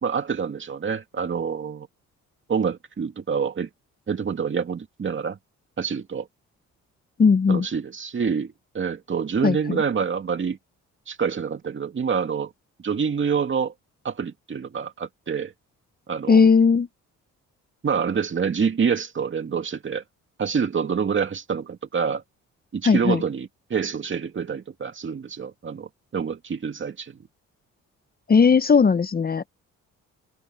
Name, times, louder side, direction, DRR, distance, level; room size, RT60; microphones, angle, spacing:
voice 1, 0.0-1.9 2.5-3.7 4.1-5.4 5.8-6.3 7.5-10.6 11.1-12.5 12.8-13.7 14.0-15.5 16.1-16.5 17.8-20.0 20.4-22.2 22.7-27.2, right 6 dB, 40° right, 2.4 m, -27 dB
voice 2, 7.2-7.7 9.4-9.8 16.3-16.9 22.8-23.2 28.3-29.5, left 5 dB, 30° left, 0.9 m, -17 dB
cardioid pair, 90°, 30 cm